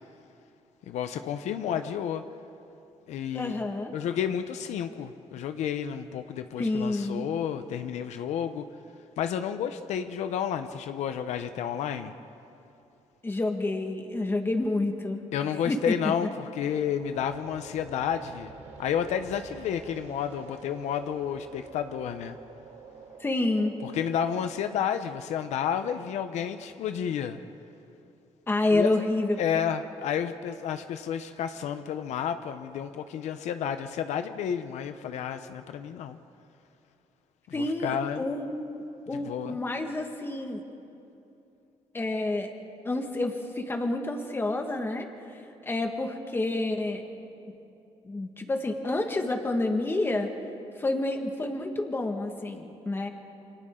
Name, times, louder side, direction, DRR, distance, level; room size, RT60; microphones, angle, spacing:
voice 1, 0.9-2.2 3.1-3.6 3.9-8.7 9.2-12.1 15.3-18.5 18.8-22.4 23.8-27.4 28.7-28.9 29.4-36.2 37.5-38.2 39.1-39.6, left 8 dB, 90° left, 9 dB, 0.9 m, -31 dB
voice 2, 3.3-3.9 6.6-7.2 13.2-15.2 15.6-15.9 23.2-23.7 28.5-29.4 37.5-38.7 39.1-40.6 41.9-42.5 42.8-45.1 45.6-47.0 48.0-50.3 50.8-53.1, left 2 dB, 20° left, 4 dB, 1.8 m, -28 dB
sound 1, 17.0-24.9, right 5 dB, 85° right, 2.9 m, -48 dB
29.0 x 25.5 x 3.9 m, 2.7 s
cardioid pair, 130°, 12 cm